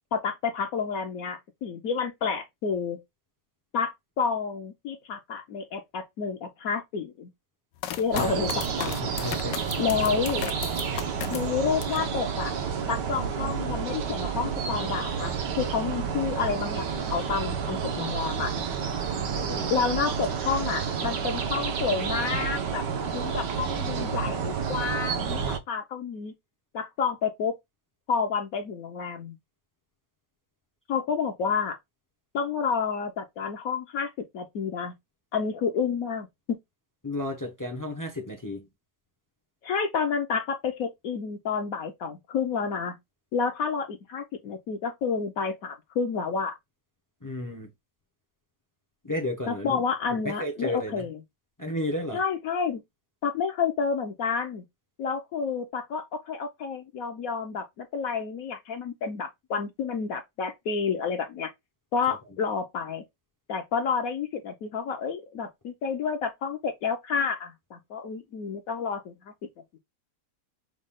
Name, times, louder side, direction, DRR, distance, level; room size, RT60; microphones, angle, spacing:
voice 1, 0.1-3.0 3.7-7.3 8.0-9.0 9.8-10.4 11.3-12.5 12.9-18.5 19.7-26.3 26.7-27.5 28.1-29.4 30.9-31.8 32.3-34.9 35.3-36.3 39.6-43.0 43.3-46.6 49.5-51.1 52.1-52.8 53.2-54.6 55.0-61.5 61.9-63.0 63.5-69.3, left 6 dB, 65° left, 1.0 m, -30 dB
sound 1, 7.8-12.1 12.5-13.2, left 11 dB, 85° left, 1.2 m, -37 dB
sound 2, 8.1-25.6, right 6 dB, 85° right, 1.5 m, -30 dB
voice 2, 8.2-8.6 9.0-9.7 10.0-10.2 19.3-19.7 37.0-38.7 47.2-47.7 49.0-49.8 50.1-51.1 51.6-52.2 62.3-62.4, left 1 dB, 25° left, 0.4 m, -33 dB
6.4 x 2.3 x 3.5 m
omnidirectional pair, 1.8 m